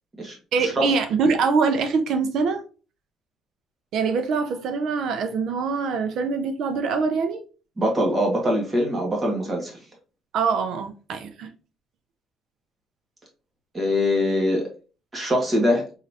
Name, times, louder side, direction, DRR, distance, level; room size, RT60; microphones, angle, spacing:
voice 1, 0.5-2.6 3.9-7.4 10.3-11.5, right 5 dB, 65° right, 0.5 m, -24 dB
voice 2, 7.8-9.8 13.7-14.7 15.1-15.8, left 1 dB, 20° right, 1.5 m, -23 dB
3.9 x 3.1 x 2.7 m
cardioid pair, 135°, 0 cm